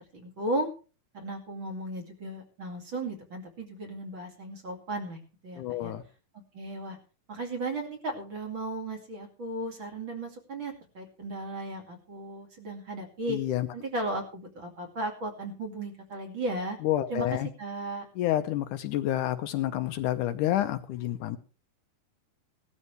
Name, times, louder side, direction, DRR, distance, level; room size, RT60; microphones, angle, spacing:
voice 1, 0.1-0.7 1.1-5.9 6.5-7.0 7.3-13.4 13.7-16.8 17.1-17.3 17.6-18.1, right 1 dB, 40° right, 2 dB, 3.0 m, -35 dB
voice 2, 5.6-6.0 13.3-13.7 16.8-17.5 18.2-21.4, left 13 dB, 75° left, 9 dB, 2.2 m, -29 dB
17.5 x 12.5 x 3.3 m, 0.35 s
omnidirectional pair, 3.9 m